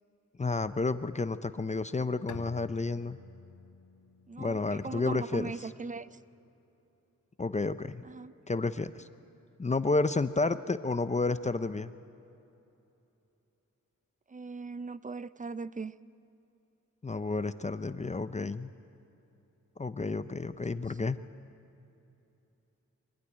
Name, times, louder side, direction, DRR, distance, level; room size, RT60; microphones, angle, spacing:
voice 1, 0.4-3.2 4.4-5.5 7.4-8.0 8.5-9.1 9.6-11.9 17.0-18.7 19.8-21.2, left 3 dB, 25° left, 12 dB, 0.6 m, -31 dB
Bowed string instrument, 2.3-5.8, left 6 dB, 75° left, 0.9 m, -50 dB
voice 2, 4.3-6.2 8.0-8.3 14.3-15.9 20.7-20.9, right 4 dB, 25° right, 16 dB, 0.5 m, -39 dB
24.0 x 16.5 x 9.8 m, 2.9 s
wide cardioid pair, 110°, 30 cm